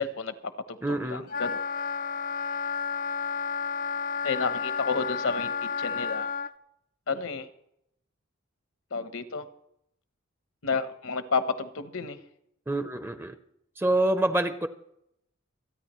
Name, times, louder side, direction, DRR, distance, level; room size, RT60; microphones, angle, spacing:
voice 1, 0.0-1.6 4.2-6.3 7.1-7.5 8.9-9.5 10.6-12.2, left 4 dB, 75° left, 10 dB, 1.0 m, -31 dB
voice 2, 0.8-1.2 12.7-13.4 13.8-14.7, right 1 dB, 10° right, 10 dB, 0.6 m, -26 dB
Wind instrument woodwind instrument, 1.3-6.5, left 5 dB, 40° left, 0.4 m, -31 dB
27.0 x 9.5 x 3.1 m, 0.76 s
head